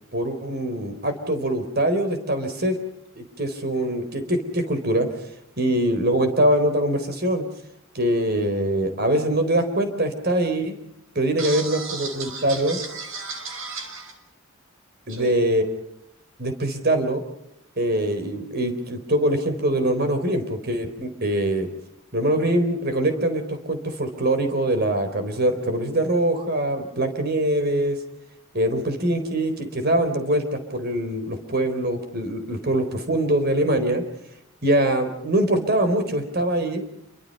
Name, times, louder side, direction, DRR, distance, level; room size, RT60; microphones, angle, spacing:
voice 1, 0.1-2.8 3.2-5.1 5.6-7.4 7.9-10.8 11.1-12.8 15.1-15.7 16.4-17.2 17.8-21.7 22.1-28.0 28.5-34.0 34.6-36.8, right 1 dB, 50° right, 8 dB, 4.2 m, -23 dB
voice 2, 11.4-14.2 15.1-15.3, right 4 dB, 75° right, 7 dB, 5.9 m, -34 dB
28.0 x 24.0 x 5.5 m, 0.79 s
head